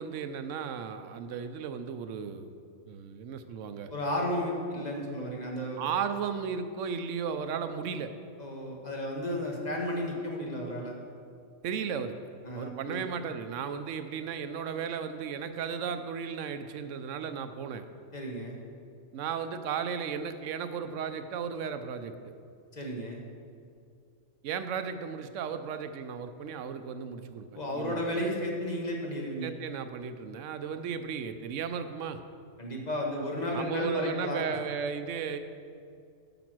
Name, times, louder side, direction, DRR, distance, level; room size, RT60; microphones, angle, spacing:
voice 1, 0.0-2.5 2.9-3.9 5.8-8.1 11.6-12.1 12.5-17.8 19.1-22.3 24.4-27.5 27.7-28.2 29.4-32.2 33.5-35.4, right 7 dB, 85° right, 10 dB, 1.0 m, -35 dB
voice 2, 3.9-5.8 8.4-10.9 12.4-13.0 18.1-18.6 22.7-23.2 27.5-29.5 32.6-34.4, left 1 dB, 35° left, -1 dB, 1.4 m, -33 dB
9.0 x 6.0 x 6.1 m, 2.4 s
omnidirectional pair, 1.2 m